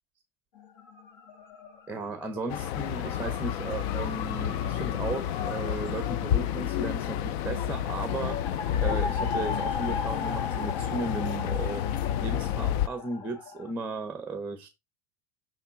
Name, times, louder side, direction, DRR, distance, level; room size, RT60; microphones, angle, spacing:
sound 1, 0.5-13.7, left 4 dB, 65° left, 1.7 m, -39 dB
voice 1, 1.9-8.4 8.8-11.8 12.2-14.7, right 3 dB, 5° right, 0.6 m, -35 dB
sound 2, 2.5-12.9, left 10 dB, 90° left, 0.5 m, -30 dB
6.2 x 3.5 x 5.6 m
cardioid pair, 165°, 31 cm